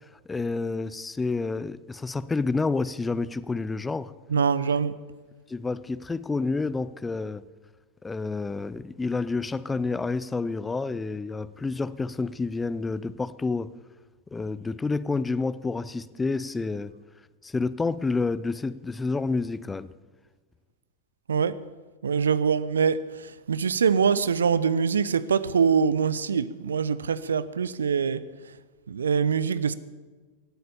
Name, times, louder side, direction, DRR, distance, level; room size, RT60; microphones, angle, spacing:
voice 1, 0.3-4.1 5.5-7.4 8.0-13.7 14.3-16.9 17.4-19.9, left 3 dB, 10° left, 0.5 m, -29 dB
voice 2, 4.3-4.9 21.3-21.6 22.0-23.0 23.5-28.2 28.9-29.7, right 6 dB, 70° right, 0.7 m, -24 dB
17.0 x 12.0 x 6.9 m
figure-of-eight pair, 90°, 0 cm